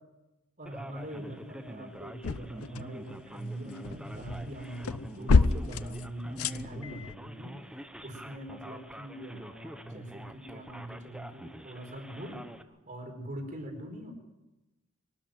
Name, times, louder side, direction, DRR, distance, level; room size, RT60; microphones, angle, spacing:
voice 1, 0.6-12.4 12.9-14.1, right 1 dB, 40° right, 3 dB, 4.6 m, -42 dB
Male speech man speaking, 0.7-12.6, equal, 5° right, 1.0 m, -46 dB
sound 1, 1.9-3.2 3.5-7.1, left 4 dB, 90° left, 0.7 m, -29 dB
24.0 x 13.0 x 9.1 m, 1.0 s
head